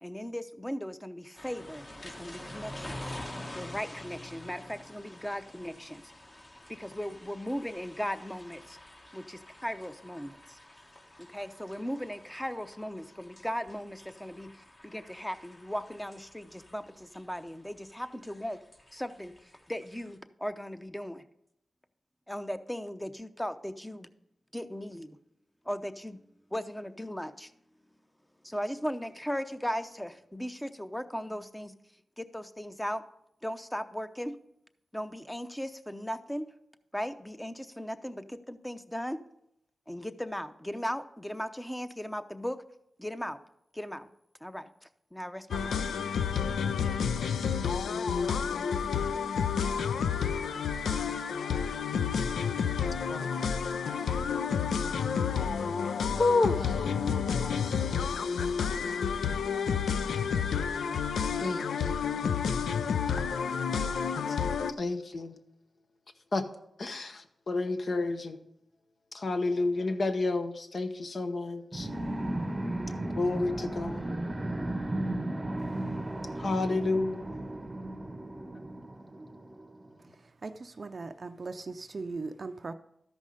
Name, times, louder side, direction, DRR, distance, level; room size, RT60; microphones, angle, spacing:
voice 1, 0.0-3.1 3.5-6.0 6.7-8.8 9.1-10.6 11.2-18.6 18.9-21.2 22.3-24.1 24.5-25.2 25.6-26.2 26.5-27.5 28.4-31.7 32.2-33.0 33.4-34.3 34.9-36.5 36.9-39.2 39.9-42.6 43.0-43.4 43.7-44.1 44.4-45.8, equal, 10° left, 0.7 m, -37 dB
sound 1, 1.4-20.2, left 1 dB, 35° left, 1.5 m, -48 dB
sound 2, 45.5-64.7, left 6 dB, 85° left, 0.3 m, -30 dB
voice 2, 53.1-53.4 55.6-55.7 56.1-56.9 61.4-62.3 63.2-63.7 64.3-64.4 64.8-65.4 66.3-66.4 66.8-68.4 69.1-71.9 73.2-74.0 76.4-77.2, left 3 dB, 60° left, 0.9 m, -30 dB
sound 3, 71.7-79.9, right 1 dB, 25° right, 0.7 m, -35 dB
voice 3, 80.1-82.7, right 3 dB, 55° right, 0.4 m, -39 dB
12.5 x 5.4 x 5.0 m
cardioid pair, 40°, 0 cm